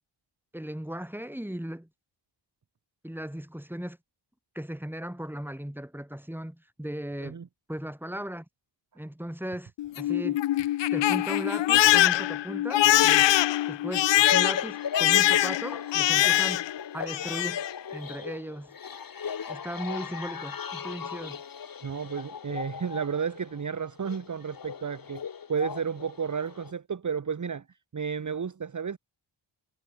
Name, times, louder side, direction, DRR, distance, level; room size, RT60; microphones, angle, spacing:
voice 1, 0.5-1.9 3.0-4.0 4.6-7.4 7.7-8.5 9.0-9.7 10.0-10.4 10.9-13.3 13.7-17.6 17.9-18.8 19.5-21.4, equal, 5° right, 5.4 m, -37 dB
Crying sobbing, 9.8-16.8 17.1-17.7, left 14 dB, 60° left, 0.5 m, -23 dB
sound 1, 14.2-26.7, left 7 dB, 45° left, 1.2 m, -37 dB
voice 2, 21.8-25.2 25.5-29.0, right 6 dB, 35° right, 1.2 m, -32 dB
wide cardioid pair, 90°, 50 cm